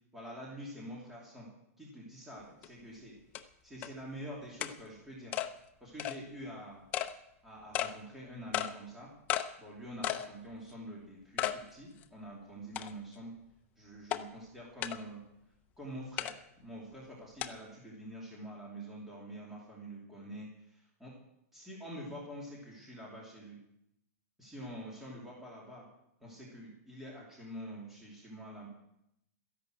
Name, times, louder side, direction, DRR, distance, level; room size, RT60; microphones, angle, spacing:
voice 1, 0.1-1.5 1.8-3.1 3.6-5.3 5.8-6.8 7.4-9.1 9.6-13.3 13.8-15.2 15.8-21.1 21.5-23.6 24.4-25.9 26.2-28.7, equal, 5° right, -5 dB, 2.9 m, -46 dB
sound 1, 2.6-2.7 3.3-3.4 3.8-3.9 4.6-4.7 5.3-5.5 6.0-6.2 6.9-7.1 7.7-7.9 8.5-8.7 9.3-9.5 10.0-10.3 10.7-10.8 11.4-11.6 12.0-12.1 12.8-13.1 14.1-14.2 14.8-15.0 16.2-16.3 17.4-17.5, left 12 dB, 20° left, 0.7 m, -33 dB
14.0 x 11.0 x 7.8 m, 0.80 s
supercardioid pair, 175°, 8 cm